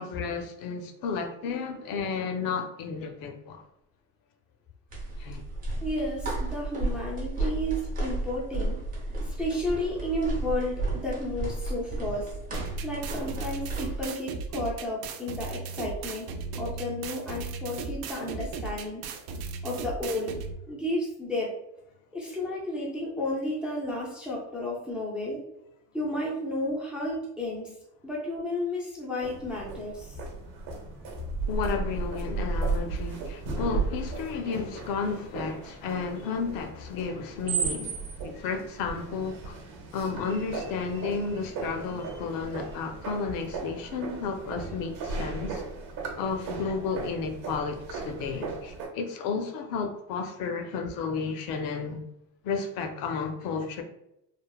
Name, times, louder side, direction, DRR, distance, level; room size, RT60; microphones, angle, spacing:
voice 1, 0.0-3.6 5.2-5.4 7.4-7.5 31.5-38.0 38.2-39.6 39.9-45.6 46.2-52.0 52.4-53.8, left 5 dB, 70° left, 6 dB, 0.5 m, -32 dB
sound 1, 4.9-14.0, right 2 dB, 25° right, 0.7 m, -33 dB
voice 2, 5.8-8.8 9.2-16.3 16.6-19.0 19.6-20.3 20.7-21.5 22.1-25.4 25.9-27.7 28.0-30.2, left 1 dB, 5° right, -5 dB, 0.3 m, -32 dB
sound 2, 12.5-20.5, right 4 dB, 85° right, 0.5 m, -36 dB
sound 3, 29.2-48.9, right 4 dB, 60° right, 0.8 m, -35 dB
3.2 x 2.0 x 2.3 m, 0.84 s
cardioid pair, 165°, 36 cm